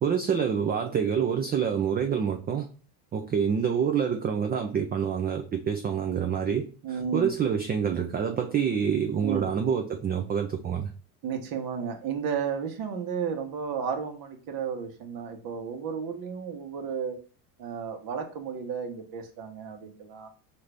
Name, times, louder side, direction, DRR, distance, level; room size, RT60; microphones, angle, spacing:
voice 1, 0.0-2.7 3.1-6.7 7.1-10.9, right 7 dB, 20° right, 5 dB, 0.4 m, -27 dB
voice 2, 6.8-7.3 9.2-9.4 11.2-17.2 17.6-20.3, right 6 dB, 50° right, 5 dB, 1.2 m, -33 dB
5.6 x 2.7 x 3.3 m, 0.38 s
supercardioid pair, 100°, 45 cm